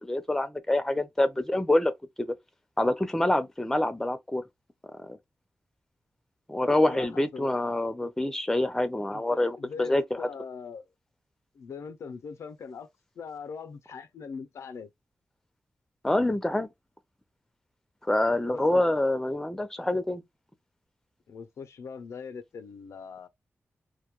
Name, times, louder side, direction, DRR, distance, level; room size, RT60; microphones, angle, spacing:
voice 1, 0.0-1.9 2.2-2.3 2.8-4.4 4.9-5.2 6.5-10.3 16.0-16.7 18.1-20.2, left 1 dB, 10° left, 0.5 m, -26 dB
voice 2, 6.7-7.5 9.1-10.9 11.5-12.9 13.2-14.9 18.5-18.8 21.3-23.3, left 5 dB, 85° left, 0.4 m, -41 dB
2.2 x 2.1 x 2.9 m
wide cardioid pair, 95°, 5 cm